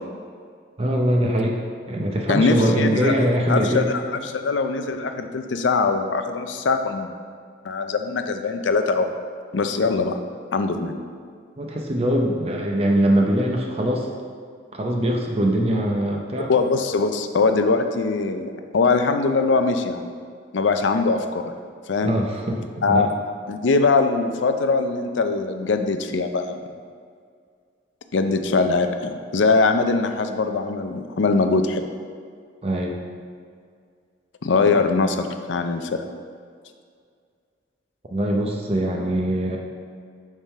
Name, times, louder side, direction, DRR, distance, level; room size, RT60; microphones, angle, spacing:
voice 1, 0.8-1.6 1.9-3.9 11.6-14.1 14.7-16.5 22.0-23.1 32.6-33.0 34.7-34.8 38.1-39.6, right 1 dB, 30° right, 0 dB, 0.6 m, -22 dB
voice 2, 2.3-3.1 3.5-7.1 7.6-9.1 9.5-10.2 10.5-10.9 16.5-20.0 20.5-21.5 21.9-22.2 22.8-23.1 23.5-26.6 28.1-31.8 34.4-35.2 35.5-36.0, left 4 dB, 80° left, 7 dB, 0.5 m, -22 dB
7.3 x 3.7 x 5.4 m, 2.1 s
head